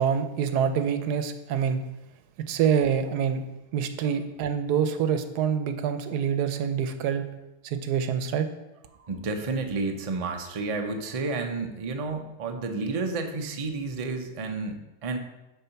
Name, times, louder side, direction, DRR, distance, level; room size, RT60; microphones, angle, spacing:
voice 1, 0.0-1.8 2.4-3.4 3.7-7.3 7.6-8.5, right 7 dB, 85° right, 9 dB, 1.2 m, -26 dB
voice 2, 8.9-15.2, right 3 dB, 40° right, 4 dB, 0.5 m, -31 dB
6.8 x 4.6 x 5.7 m, 0.99 s
omnidirectional pair, 1.7 m